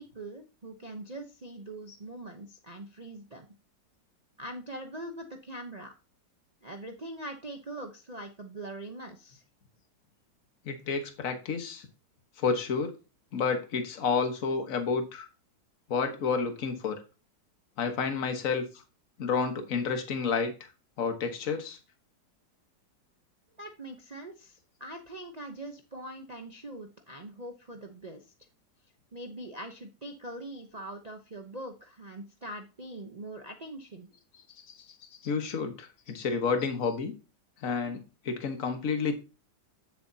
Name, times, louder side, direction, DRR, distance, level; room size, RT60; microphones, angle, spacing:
voice 1, 0.0-3.5 4.4-5.9 6.6-9.4 23.6-28.2 29.1-34.1, right 1 dB, 35° right, 3 dB, 0.7 m, -42 dB
voice 2, 10.6-11.9 12.4-12.9 13.3-15.3 15.9-17.0 17.8-18.6 19.2-20.5 21.0-21.8 35.2-37.1 37.6-38.0 38.2-39.2, left 5 dB, 50° left, 6 dB, 1.6 m, -30 dB
11.0 x 7.0 x 2.8 m, 0.30 s
omnidirectional pair, 1.9 m